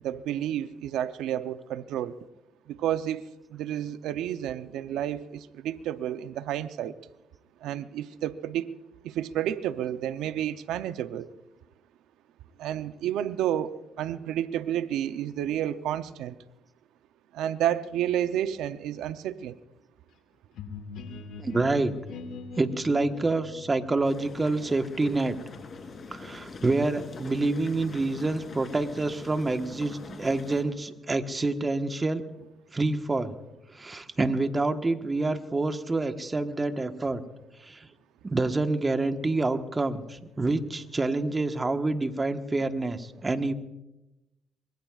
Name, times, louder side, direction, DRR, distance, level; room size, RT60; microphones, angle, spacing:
voice 1, 0.0-2.2 2.7-3.2 3.5-6.9 7.6-8.8 9.0-11.3 12.6-16.4 17.3-19.6, right 11 dB, 90° right, 11 dB, 0.6 m, -30 dB
sound 1, 20.5-26.2, left 4 dB, 85° left, 2.0 m, -43 dB
voice 2, 21.4-21.9 22.6-25.4 26.1-32.2 32.7-33.3 33.7-37.2 37.6-37.9 38.2-43.5, right 2 dB, 25° right, 7 dB, 1.3 m, -27 dB
sound 2, 24.0-30.6, left 4 dB, 50° left, 3.3 m, -44 dB
24.5 x 22.0 x 2.4 m, 0.93 s
cardioid pair, 90°, 0 cm